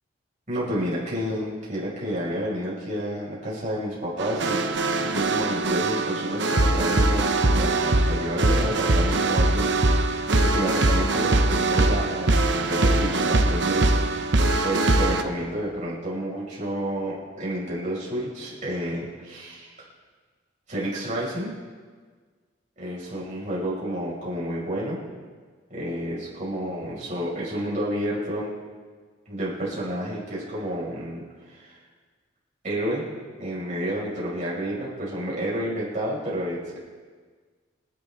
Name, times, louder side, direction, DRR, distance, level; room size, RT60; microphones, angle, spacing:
voice 1, 0.5-4.7 5.0-19.8 20.7-21.5 22.8-25.0 25.7-28.5 29.3-31.8 32.6-33.1 33.4-36.8, equal, 40° right, -6 dB, 5.5 m, -30 dB
sound 1, 4.2-15.2, right 2 dB, 60° right, 0.9 m, -22 dB
28.0 x 10.5 x 3.6 m, 1.5 s
head